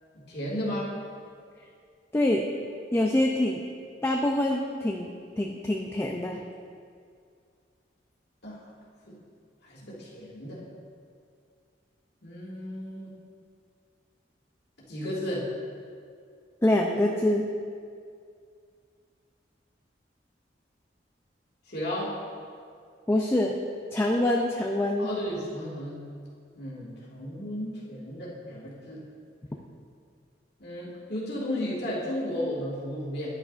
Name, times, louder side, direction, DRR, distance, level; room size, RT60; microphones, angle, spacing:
voice 1, 0.1-0.9 8.4-8.6 9.1-9.2 9.6-10.6 12.2-13.1 14.9-15.5 21.7-22.1 25.0-26.1 26.6-29.0 30.6-33.3, left 1 dB, 65° left, -5 dB, 2.1 m, -34 dB
voice 2, 2.1-2.4 2.9-3.6 4.0-5.1 5.4-6.4 16.6-17.5 23.1-23.5 23.9-25.1, left 1 dB, 15° left, 1 dB, 0.4 m, -25 dB
10.0 x 9.1 x 2.5 m, 2.2 s
head